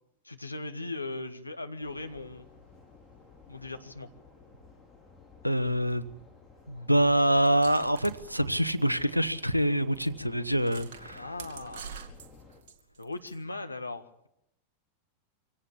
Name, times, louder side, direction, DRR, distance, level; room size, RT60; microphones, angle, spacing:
voice 1, 0.2-2.5 3.5-4.1 11.1-12.1 13.0-14.3, left 2 dB, 85° left, 7 dB, 1.7 m, -39 dB
sound 1, 1.8-12.6, left 4 dB, 5° left, 5.6 m, -55 dB
voice 2, 5.4-6.1 6.7-11.2, right 1 dB, 90° right, 14 dB, 1.1 m, -25 dB
sound 2, 7.4-9.2 9.5-9.6 10.0-10.1 10.6-13.4, right 6 dB, 55° right, 2.7 m, -47 dB
25.0 x 17.5 x 8.6 m, 0.81 s
figure-of-eight pair, 90°, 0 cm